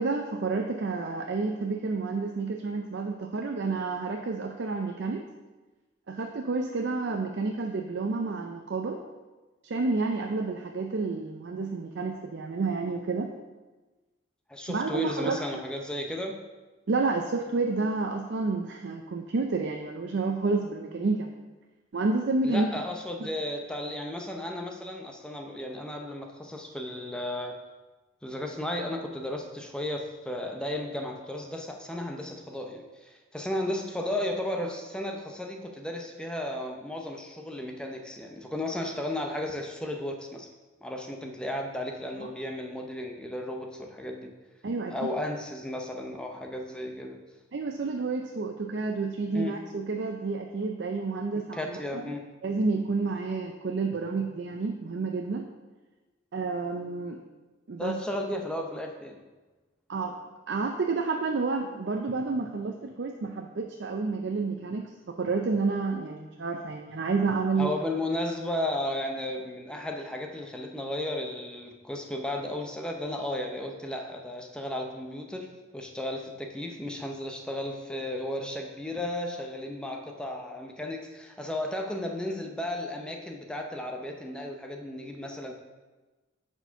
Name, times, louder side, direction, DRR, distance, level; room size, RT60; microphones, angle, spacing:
voice 1, 0.0-5.3 6.1-9.0 9.6-13.3 14.7-15.4 16.9-21.3 21.9-22.7 23.2-23.3 42.2-42.3 44.6-44.9 47.5-52.0 52.4-55.5 56.3-57.2 57.7-58.0 59.9-60.1 60.5-67.7, right 3 dB, 65° right, 3 dB, 0.5 m, -30 dB
voice 2, 14.5-16.4 22.4-27.6 28.2-40.5 40.8-44.3 44.9-47.2 49.3-49.6 51.5-52.3 57.8-59.2 67.6-85.5, left 1 dB, 5° left, 2 dB, 0.6 m, -34 dB
6.8 x 4.5 x 5.6 m, 1.2 s
head